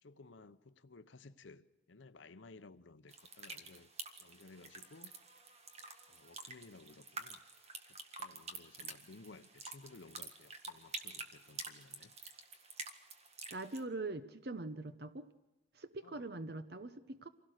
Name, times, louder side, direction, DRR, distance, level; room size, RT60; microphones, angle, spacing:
voice 1, 0.0-3.9 4.2-5.1 6.1-7.4 8.2-12.1 16.0-16.3, left 3 dB, 85° left, 0.8 m, -57 dB
sound 1, 3.1-13.8, right 4 dB, 35° right, 1.7 m, -49 dB
voice 2, 13.5-15.3 15.7-17.3, right 2 dB, 55° right, 0.9 m, -43 dB
26.0 x 16.5 x 6.5 m
head